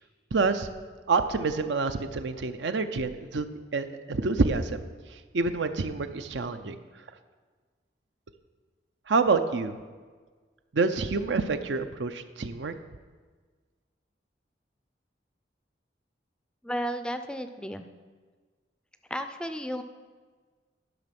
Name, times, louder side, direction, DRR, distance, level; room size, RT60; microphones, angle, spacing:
voice 1, 0.3-0.7 1.1-3.5 3.7-4.9 5.3-6.8 9.1-9.8 10.7-12.7, right 4 dB, 85° right, 9 dB, 0.6 m, -27 dB
voice 2, 16.6-17.9 19.1-19.8, equal, 5° left, 8 dB, 0.3 m, -33 dB
11.0 x 6.1 x 5.8 m, 1.5 s
head